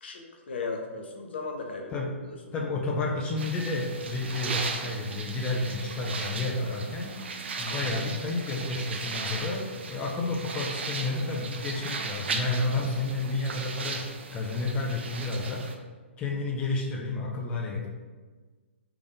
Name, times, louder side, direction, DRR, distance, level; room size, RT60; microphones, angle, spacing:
voice 1, 0.0-1.9, left 4 dB, 55° left, 2 dB, 0.7 m, -36 dB
voice 2, 2.5-7.1 7.6-14.0 14.3-15.6 16.2-17.9, left 3 dB, 15° left, -2 dB, 0.5 m, -31 dB
sound 1, 3.4-15.7, right 4 dB, 60° right, 0.5 m, -36 dB
3.5 x 3.4 x 3.9 m, 1.4 s
figure-of-eight pair, 120°, 7 cm